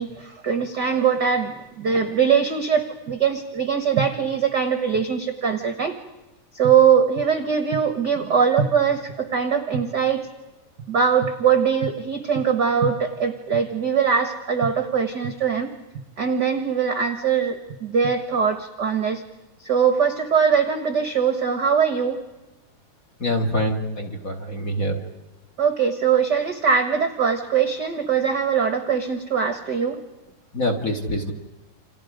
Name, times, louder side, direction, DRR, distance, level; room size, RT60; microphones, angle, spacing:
voice 1, 0.0-6.0 6.5-10.3 10.9-15.7 16.2-19.2 19.6-22.2 25.6-30.0, right 7 dB, 50° right, 8 dB, 1.3 m, -21 dB
voice 2, 23.2-25.0 30.5-31.3, left 1 dB, 30° left, 5 dB, 2.1 m, -25 dB
29.0 x 28.0 x 5.1 m, 1.1 s
omnidirectional pair, 3.8 m